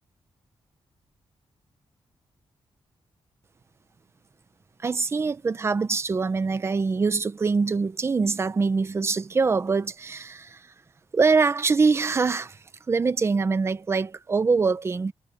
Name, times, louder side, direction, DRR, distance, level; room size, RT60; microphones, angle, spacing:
voice 1, 4.8-10.6 11.1-12.6 12.9-15.1, right 4 dB, 25° right, 0.8 m, -24 dB
wide cardioid pair, 175°, 10 cm